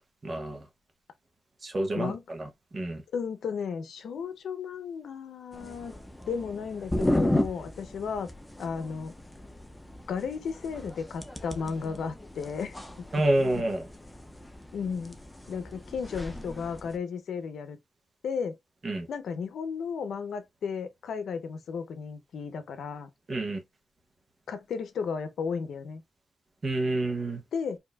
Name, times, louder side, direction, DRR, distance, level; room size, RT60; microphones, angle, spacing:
voice 1, 0.2-0.6 1.6-3.0 13.1-13.9 18.8-19.1 23.3-23.6 26.6-27.4, right 1 dB, 30° right, 1.0 m, -28 dB
voice 2, 3.1-5.9 6.3-8.3 8.6-9.1 10.1-13.1 14.7-15.2 15.5-17.8 18.2-18.5 19.1-23.1 24.5-26.0 27.5-27.8, left 6 dB, 85° left, 0.6 m, -34 dB
sound 1, 5.5-17.0, left 1 dB, 10° left, 0.5 m, -35 dB
4.6 x 2.7 x 2.2 m
wide cardioid pair, 170°, 0 cm